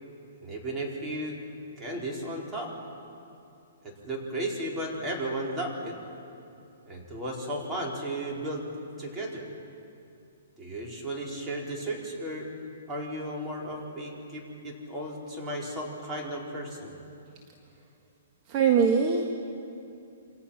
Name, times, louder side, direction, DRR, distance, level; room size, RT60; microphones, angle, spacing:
voice 1, 0.4-1.4 1.8-2.7 3.8-6.0 6.9-8.7 9.0-9.5 10.6-12.5 12.9-16.9, right 1 dB, 15° right, -3 dB, 4.7 m, -34 dB
voice 2, 18.5-19.2, right 6 dB, 35° right, 3 dB, 1.7 m, -22 dB
28.0 x 25.5 x 5.9 m, 2.7 s
hypercardioid pair, 150°, 0 cm